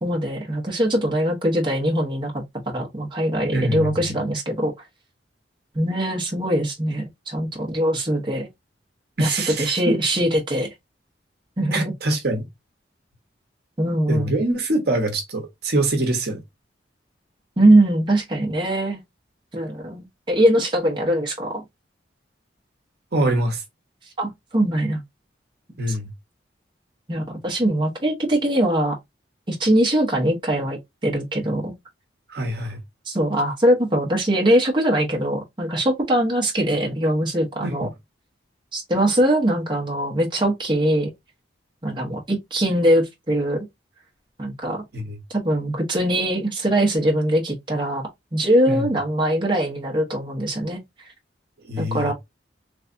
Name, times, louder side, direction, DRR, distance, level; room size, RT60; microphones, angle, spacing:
voice 1, 0.0-2.4 2.7-4.7 5.7-8.5 9.2-10.7 11.6-11.9 13.8-14.4 17.6-19.0 19.5-21.6 24.2-25.0 25.9-26.0 27.1-29.0 29.5-31.7 33.1-37.9 38.7-41.1 41.8-43.7 44.4-44.8 45.3-48.0 48.3-50.8 51.8-52.1, right 1 dB, 25° right, 1.0 m, -22 dB
voice 2, 3.5-3.9 9.2-10.0 11.7-12.5 14.1-16.4 23.1-23.6 25.8-26.1 32.3-32.8 37.6-37.9 44.9-45.2 48.7-48.9 51.7-52.1, right 1 dB, 60° right, 1.0 m, -24 dB
3.4 x 3.2 x 2.5 m
head